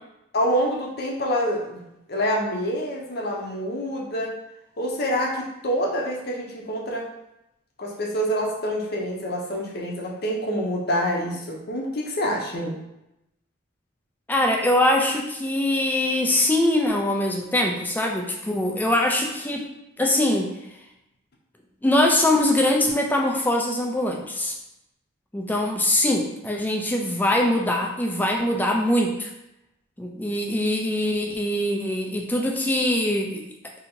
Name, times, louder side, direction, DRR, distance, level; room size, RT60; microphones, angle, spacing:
voice 1, 0.3-1.8 2.1-4.3 4.8-7.0 7.8-12.8, equal, 50° left, -2 dB, 0.6 m, -26 dB
voice 2, 14.3-19.7 20.0-20.5 21.8-24.5 25.3-29.3 30.0-33.5, left 1 dB, 10° left, 1 dB, 0.3 m, -22 dB
2.8 x 2.7 x 4.2 m, 0.88 s
head